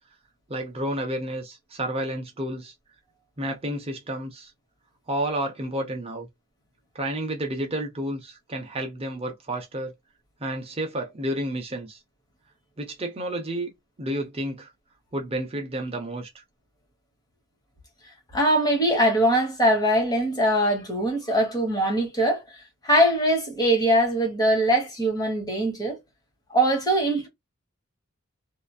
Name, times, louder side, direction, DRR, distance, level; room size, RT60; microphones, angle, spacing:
voice 1, 0.5-2.7 3.4-4.5 5.1-6.3 6.9-9.9 10.4-12.0 12.8-13.7 14.0-14.7 15.1-16.4, right 1 dB, 30° right, 0.6 m, -31 dB
voice 2, 18.3-22.4 22.8-26.0 26.5-27.3, right 1 dB, 20° left, 1.2 m, -22 dB
2.8 x 2.4 x 2.3 m
head